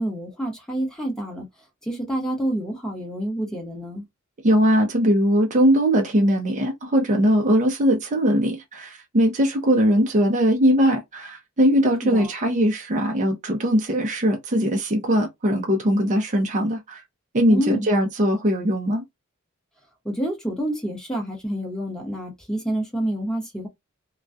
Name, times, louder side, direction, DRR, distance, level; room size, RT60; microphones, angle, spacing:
voice 1, 0.0-1.5 1.8-4.0 12.0-12.3 17.5-17.9 20.0-23.7, right 1 dB, 5° left, 0.9 m, -28 dB
voice 2, 4.4-17.0 17.3-19.0, equal, 35° right, 0.5 m, -20 dB
2.3 x 2.2 x 2.5 m
head